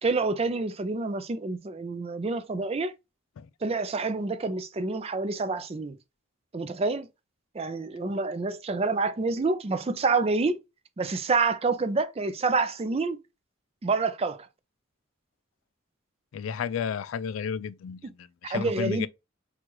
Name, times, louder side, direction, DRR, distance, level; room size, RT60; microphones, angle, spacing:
voice 1, 0.0-2.9 3.6-6.0 6.5-7.1 7.5-10.6 11.0-13.2 13.8-14.5 18.4-19.1, right 3 dB, 30° right, 0.4 m, -27 dB
voice 2, 16.3-19.1, left 7 dB, 80° left, 0.3 m, -32 dB
6.1 x 2.4 x 2.9 m
head